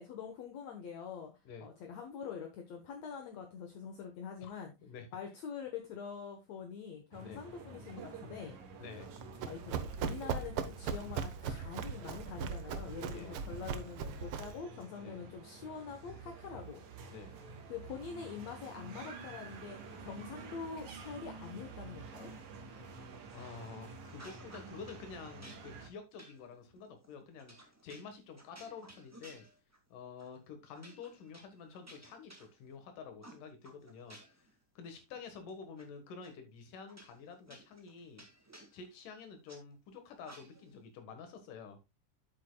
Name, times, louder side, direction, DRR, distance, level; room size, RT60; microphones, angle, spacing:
voice 1, 0.0-1.3 1.6-4.7 5.1-8.6 9.4-16.8 17.7-22.3, left 6 dB, 65° left, 4 dB, 2.2 m, -45 dB
sound 1, 7.1-25.9, right 4 dB, 65° right, 3.0 m, -50 dB
voice 2, 8.8-9.1 13.1-13.8 15.0-15.2 17.1-17.3 22.7-22.9 23.3-29.5 29.9-34.5 34.8-38.2 38.7-41.8, left 5 dB, 85° left, 7 dB, 3.0 m, -49 dB
Run, 9.0-14.6, right 6 dB, 90° right, 1.2 m, -39 dB
sound 2, 23.3-23.8 24.1-25.0 25.4-29.9 30.2-30.4 30.7-32.8 33.2-34.5 34.9-35.8 36.2-36.3 36.9-39.6 40.2-40.8, right 1 dB, 10° right, 0.8 m, -57 dB
10.0 x 8.3 x 2.2 m, 0.24 s
omnidirectional pair, 3.6 m